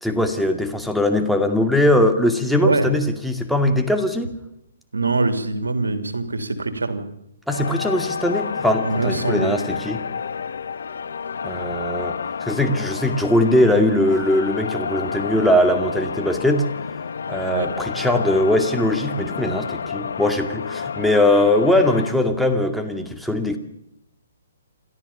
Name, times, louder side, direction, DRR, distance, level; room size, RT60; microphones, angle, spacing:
voice 1, 0.0-4.3 7.5-10.0 11.4-16.7 17.3-23.6, left 1 dB, ahead, 4 dB, 2.3 m, -20 dB
voice 2, 4.9-7.0 8.8-9.7 17.5-17.7, right 3 dB, 90° right, 9 dB, 3.1 m, -23 dB
sound 1, 7.5-22.1, left 6 dB, 70° left, 1.3 m, -29 dB
29.0 x 13.0 x 7.2 m, 0.79 s
hypercardioid pair, 140°, 0 cm